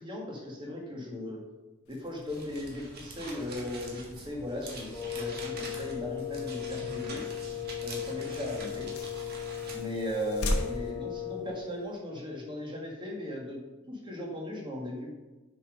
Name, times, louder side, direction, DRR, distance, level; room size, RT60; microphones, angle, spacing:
voice 1, 0.0-1.4 1.9-7.2 7.8-8.9 9.7-13.6 13.9-15.2, left 1 dB, 20° right, -2 dB, 1.7 m, -37 dB
sound 1, 1.8-12.0, left 1 dB, 90° left, 1.1 m, -41 dB
sound 2, 2.3-9.8, right 2 dB, 45° right, 1.5 m, -45 dB
Wind instrument woodwind instrument, 4.9-11.7, left 10 dB, 20° left, 1.3 m, -37 dB
6.9 x 5.3 x 5.1 m, 1.2 s
head